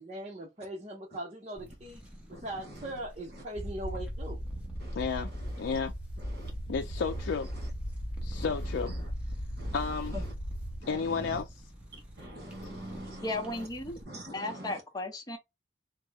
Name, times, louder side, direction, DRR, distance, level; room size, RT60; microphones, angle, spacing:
voice 1, 0.0-2.0 2.3-4.4, right 1 dB, 40° right, 0.8 m, -40 dB
sound 1, 1.5-14.0, right 1 dB, 5° right, 1.0 m, -49 dB
voice 2, 2.3-2.9 3.3-3.4 4.8-5.0 5.3-5.8 6.2-6.5 7.1-7.2 7.5-7.7 8.3-9.1 9.6-10.3 10.8-11.4 11.9-13.7 14.0-14.8, equal, 65° right, 1.6 m, -46 dB
sound 2, 3.6-10.8, equal, 60° left, 1.0 m, -37 dB
voice 3, 5.0-5.9 6.7-7.5 8.2-9.0 9.7-10.2 10.9-11.7, left 5 dB, 85° left, 0.4 m, -32 dB
voice 4, 13.2-14.0 14.3-15.4, left 2 dB, 20° left, 0.8 m, -35 dB
3.5 x 2.1 x 3.4 m
head